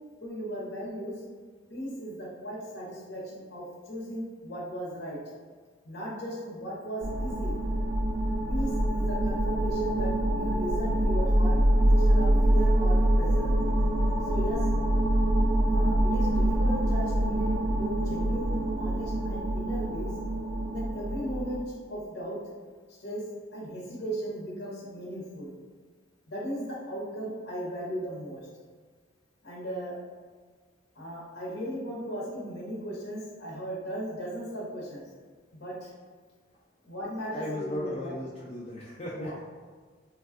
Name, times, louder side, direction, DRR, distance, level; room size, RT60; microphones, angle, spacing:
voice 1, 0.2-1.2 1.7-5.2 5.8-7.6 8.5-11.5 11.8-13.6 14.2-14.6 15.7-20.1 20.7-22.4 23.0-23.2 23.5-25.5 26.3-28.5 29.4-29.9 30.9-35.1 35.6-35.9 36.8-38.1 39.1-39.4, equal, 60° left, -5 dB, 0.9 m, -37 dB
sound 1, 7.0-21.6, right 1 dB, 80° right, 0.4 m, -25 dB
voice 2, 37.3-39.4, left 1 dB, 35° left, -6 dB, 0.4 m, -36 dB
3.4 x 2.2 x 2.4 m, 1.5 s
head